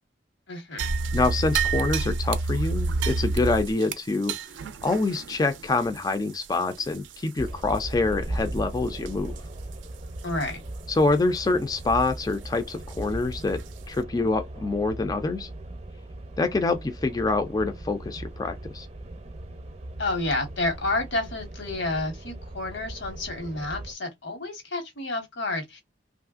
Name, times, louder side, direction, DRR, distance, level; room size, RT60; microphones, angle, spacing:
voice 1, 0.5-0.9 10.2-10.6 20.0-25.8, left 2 dB, 85° left, 1.2 m, -30 dB
sound 1, 0.8-7.4 7.7-7.8 8.4-8.6 9.1-9.4 9.7-9.8 10.4-10.5 12.9-13.0 13.6-13.7, right 3 dB, 85° right, 0.4 m, -29 dB
voice 2, 1.1-4.3 4.8-9.3 10.9-15.5 16.4-18.9, left 3 dB, 20° left, 0.3 m, -26 dB
sound 2, 7.4-23.9, right 1 dB, 35° right, 0.6 m, -38 dB
3.0 x 2.4 x 2.4 m
head